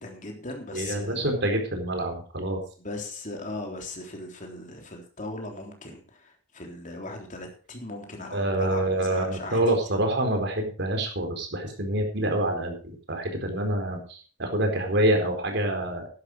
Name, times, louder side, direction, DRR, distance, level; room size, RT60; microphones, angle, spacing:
voice 1, 0.0-1.3 2.8-9.6, left 2 dB, 40° left, 2 dB, 3.6 m, -38 dB
voice 2, 0.7-2.6 8.3-16.1, right 1 dB, 60° right, 3 dB, 4.4 m, -26 dB
12.0 x 11.0 x 5.0 m, 0.40 s
head